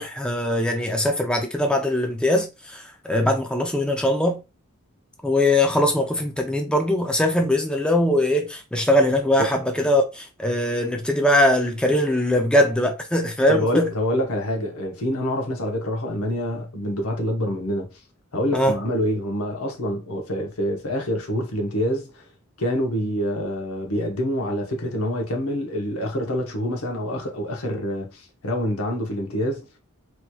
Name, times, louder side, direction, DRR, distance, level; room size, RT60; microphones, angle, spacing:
voice 1, 0.0-4.4 5.2-13.9 18.5-18.8, left 1 dB, 5° left, 0.4 m, -21 dB
voice 2, 13.5-17.9 18.3-22.2 22.6-29.8, equal, 85° left, 0.9 m, -26 dB
3.1 x 2.9 x 2.2 m
head